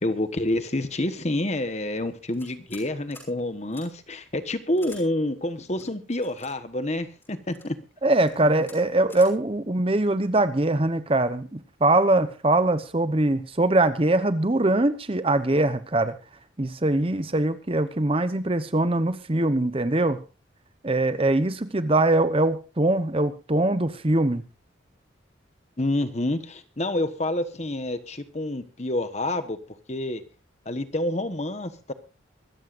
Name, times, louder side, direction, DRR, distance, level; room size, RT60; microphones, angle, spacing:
voice 1, 0.0-7.8 25.8-29.6 29.9-30.2 30.6-31.9, left 1 dB, 35° left, 10 dB, 1.2 m, -28 dB
sound 1, 2.3-2.9 3.1-3.3 3.7-3.8 4.8-5.0 5.8-6.5 7.2-7.7 8.2-8.3 8.6-8.8 9.1-9.3, left 2 dB, 10° left, 6.0 m, -47 dB
voice 2, 8.0-16.1 16.6-20.2 20.8-24.4, right 2 dB, 30° right, 12 dB, 0.9 m, -22 dB
24.5 x 14.0 x 2.6 m, 0.32 s
head